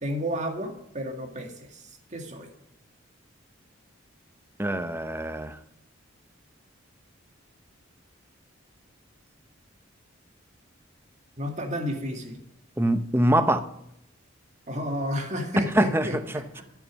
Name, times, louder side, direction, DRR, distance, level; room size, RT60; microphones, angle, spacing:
voice 1, 0.0-2.5 11.4-12.4 14.7-16.6, equal, 35° right, 1.9 m, -32 dB
voice 2, 4.6-5.6 12.8-13.6 15.7-16.6, right 1 dB, 10° right, 0.6 m, -24 dB
12.5 x 7.0 x 6.3 m
head